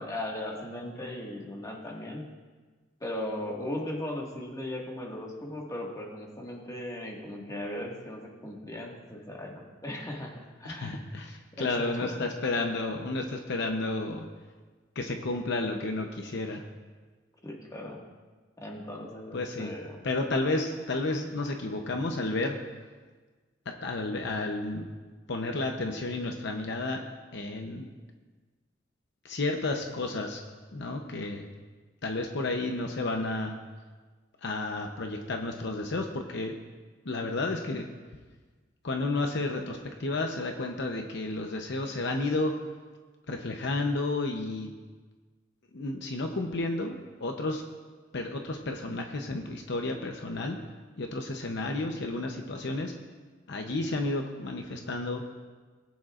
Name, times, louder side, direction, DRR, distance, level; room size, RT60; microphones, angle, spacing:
voice 1, 0.0-2.3 3.0-11.1 11.5-12.2 17.4-18.0 18.6-20.0, left 1 dB, 20° left, -1 dB, 1.8 m, -38 dB
voice 2, 10.6-14.3 14.9-16.7 19.3-19.7 20.0-22.6 23.7-24.9 25.3-27.0 27.3-27.9 29.2-30.4 30.7-31.5 32.0-33.6 34.4-36.6 37.0-37.9 38.8-42.5 43.3-44.7 45.7-47.6 48.1-50.6 51.0-52.9 53.5-55.2, left 2 dB, 65° left, 4 dB, 0.8 m, -31 dB
19.5 x 9.3 x 2.5 m, 1.4 s
head